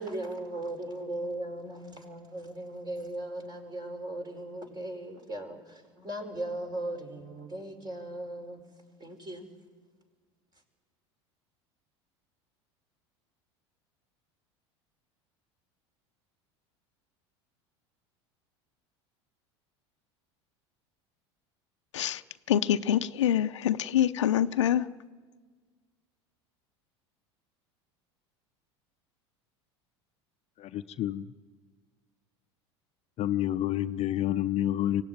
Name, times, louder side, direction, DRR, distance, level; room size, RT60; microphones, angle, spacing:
voice 1, 0.0-8.6 9.0-9.5, right 1 dB, 30° right, 5.2 m, -38 dB
voice 2, 22.5-24.9, left 10 dB, 90° left, 0.7 m, -25 dB
voice 3, 30.6-31.3 33.2-35.0, left 12 dB, 45° left, 0.7 m, -29 dB
24.5 x 17.5 x 9.4 m
hypercardioid pair, 85°, 15 cm